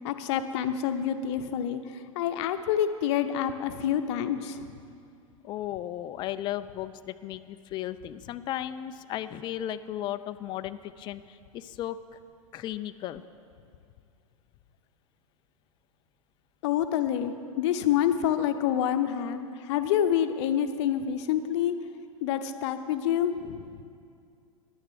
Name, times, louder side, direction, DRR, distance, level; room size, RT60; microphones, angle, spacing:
voice 1, 0.0-4.7 16.6-21.8 22.2-23.7, left 9 dB, 55° left, 9 dB, 0.7 m, -27 dB
voice 2, 5.4-12.0 12.5-13.2, left 12 dB, 25° left, 12 dB, 0.3 m, -35 dB
11.0 x 6.7 x 7.6 m, 2.4 s
figure-of-eight pair, 95°, 18 cm